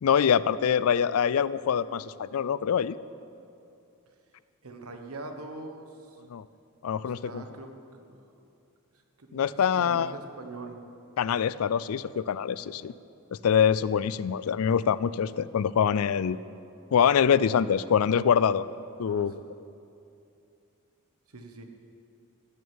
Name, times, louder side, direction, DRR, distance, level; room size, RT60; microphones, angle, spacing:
voice 1, 0.0-3.0 6.3-6.5 6.8-7.4 9.3-10.1 11.2-12.9 13.3-16.4 16.9-18.6 19.0-19.3, left 7 dB, 80° left, 18 dB, 0.4 m, -24 dB
voice 2, 4.6-6.2 7.0-7.7 8.0-8.2 9.2-9.5 9.8-10.8 12.5-12.6 19.0-19.5 21.3-21.7, right 2 dB, 80° right, 5 dB, 1.2 m, -43 dB
14.0 x 6.5 x 8.8 m, 2.6 s
head